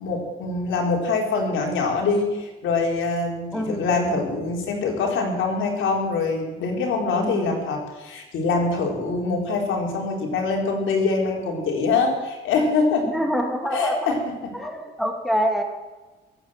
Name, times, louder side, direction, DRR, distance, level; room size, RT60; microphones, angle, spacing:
voice 1, 0.0-13.1 13.7-14.5, left 3 dB, 80° left, 0 dB, 4.1 m, -24 dB
voice 2, 3.5-3.9 7.2-7.6 13.1-14.2 14.5-15.6, equal, ahead, 3 dB, 2.8 m, -26 dB
21.0 x 8.8 x 7.5 m, 1.2 s
cardioid pair, 90°, 20 cm